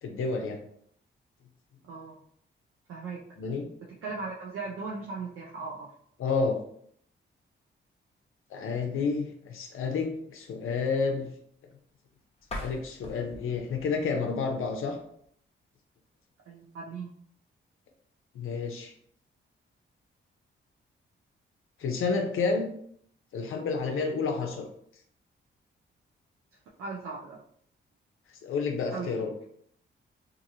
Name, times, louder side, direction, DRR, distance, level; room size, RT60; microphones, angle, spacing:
voice 1, 0.0-0.6 3.4-3.7 6.2-6.6 8.5-11.3 12.6-15.0 18.3-18.9 21.8-22.7 23.3-24.7 28.4-29.3, left 4 dB, 75° left, 3 dB, 0.5 m, -30 dB
voice 2, 1.8-2.2 2.9-3.2 4.0-5.9 16.5-17.1 26.8-27.4 28.9-29.1, right 4 dB, 85° right, -2 dB, 0.5 m, -37 dB
sound 1, 12.4-15.3, left 1 dB, 30° left, 0.7 m, -43 dB
2.8 x 2.5 x 2.6 m, 0.66 s
cardioid pair, 80°, 21 cm